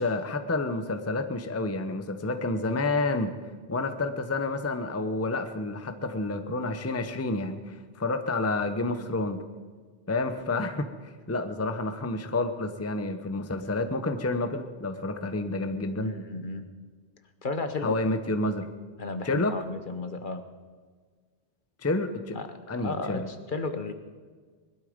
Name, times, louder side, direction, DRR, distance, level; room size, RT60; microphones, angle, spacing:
voice 1, 0.0-3.3 3.7-9.4 10.1-16.1 17.8-18.7 19.2-19.5 21.8-22.4 22.7-23.3, left 2 dB, 15° left, 8 dB, 0.8 m, -29 dB
voice 2, 16.0-16.7 17.4-17.9 19.0-20.4 22.3-23.9, left 3 dB, 50° left, 8 dB, 1.1 m, -34 dB
20.5 x 12.0 x 5.1 m, 1.5 s
omnidirectional pair, 1.1 m